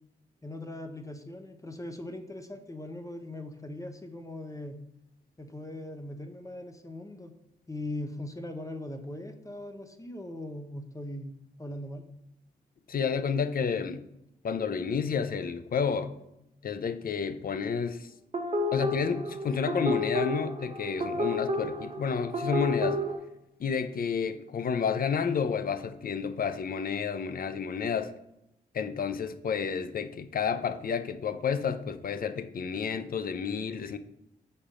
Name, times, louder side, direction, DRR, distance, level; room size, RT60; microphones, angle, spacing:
voice 1, 0.4-4.8 5.4-7.3 7.7-11.3 11.6-12.1, left 1 dB, 20° left, 0.8 m, -40 dB
voice 2, 12.9-14.0 14.4-16.1 16.6-18.1 18.7-23.0 23.6-28.1 28.7-34.0, left 6 dB, 55° left, 0.6 m, -30 dB
sound 1, 18.3-23.2, left 1 dB, 35° right, 1.0 m, -31 dB
5.1 x 4.2 x 5.0 m
supercardioid pair, 50°, 17 cm